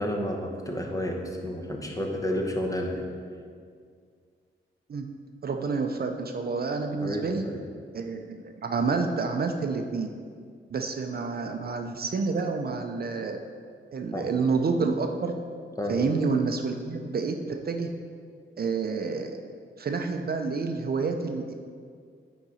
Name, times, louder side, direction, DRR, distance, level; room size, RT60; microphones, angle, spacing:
voice 1, 0.0-3.0 7.0-7.6 14.1-14.2 15.8-16.0, left 1 dB, 15° left, 1 dB, 0.9 m, -30 dB
voice 2, 5.4-7.4 7.9-10.1 10.7-13.4 13.9-15.3 15.9-17.4 17.6-17.9 18.6-19.4 19.8-21.5, right 4 dB, 45° right, 5 dB, 0.5 m, -28 dB
9.5 x 3.9 x 4.2 m, 2.1 s
wide cardioid pair, 115°, 21 cm